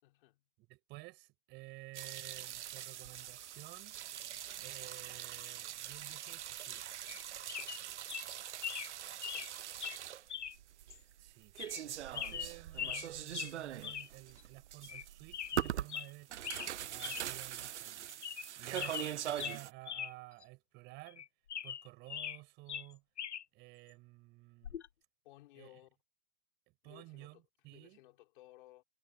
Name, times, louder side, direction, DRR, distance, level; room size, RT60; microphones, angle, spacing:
voice 1, 0.0-0.4 9.3-10.2 25.2-26.0 26.8-27.4 27.7-28.8, left 16 dB, 50° left, 5.9 m, -60 dB
voice 2, 0.6-4.0 4.6-6.9 11.2-11.5 11.8-16.3 16.8-18.1 18.6-21.3 21.6-23.0 23.5-24.8 25.5-25.7 26.8-28.0, right 22 dB, 30° right, 6.1 m, -53 dB
sound 1, 1.9-19.7, right 11 dB, 85° right, 0.5 m, -43 dB
sound 2, 7.1-7.2 7.5-7.8 8.1-8.3 8.6-8.9 9.2-9.5 9.8-10.0 10.3-10.6 10.9-11.0 11.6-11.8 12.1-13.1 13.3-13.5 13.8-14.1 14.4-14.5 14.8-15.0 15.3-16.1 16.4-16.7 17.0-17.2 17.6-17.7 18.1-18.5 18.7-20.1 20.4-20.5 21.1-22.4 22.7-23.4 24.6-24.9, left 9 dB, 80° left, 1.3 m, -41 dB
hypercardioid pair, 135°, 34 cm